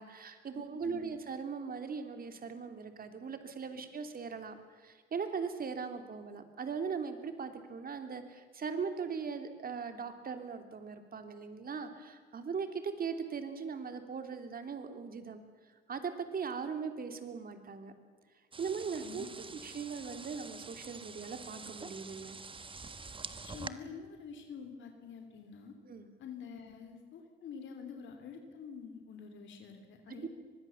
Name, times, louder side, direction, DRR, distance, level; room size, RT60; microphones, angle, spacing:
voice 1, 0.0-15.4 15.9-17.9 18.6-19.3 19.6-22.4 25.9-26.1 30.2-30.3, right 5 dB, 45° right, 7 dB, 3.1 m, -39 dB
voice 2, 0.5-1.1 19.0-19.3 23.4-25.7 26.2-30.3, left 6 dB, 70° left, 5 dB, 3.2 m, -47 dB
sound 1, 18.5-23.7, right 4 dB, 25° right, 1.4 m, -46 dB
24.0 x 21.0 x 7.2 m, 1.5 s
cardioid pair, 90°, 20 cm